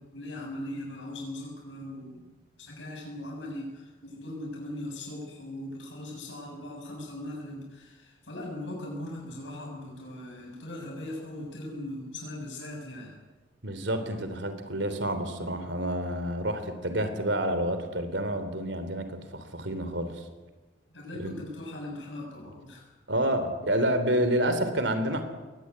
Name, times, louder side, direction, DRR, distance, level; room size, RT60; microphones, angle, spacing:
voice 1, 0.0-2.3 2.6-13.2 20.9-22.8, left 1 dB, 80° left, -1 dB, 6.9 m, -39 dB
voice 2, 13.6-20.2 21.1-21.3 23.1-25.2, right 1 dB, 75° right, 9 dB, 3.4 m, -29 dB
22.0 x 17.5 x 9.6 m, 1.2 s
head